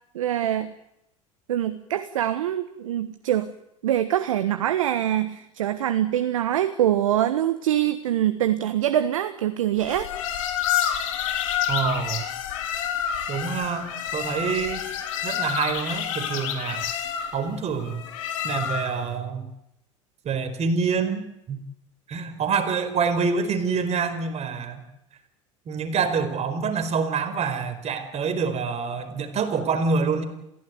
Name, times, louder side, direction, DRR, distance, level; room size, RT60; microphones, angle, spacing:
voice 1, 0.1-0.7 1.5-3.5 3.8-10.1, right 11 dB, 80° right, 10 dB, 1.4 m, -24 dB
sound 1, 9.8-19.1, left 9 dB, 75° left, 4.1 m, -28 dB
voice 2, 11.7-12.3 13.3-14.9 15.2-16.9 17.3-18.0 18.4-19.5 20.2-21.6 22.1-24.8 25.7-30.2, right 5 dB, 40° right, 8 dB, 4.8 m, -26 dB
28.5 x 16.5 x 9.6 m, 0.85 s
hypercardioid pair, 75°, 17 cm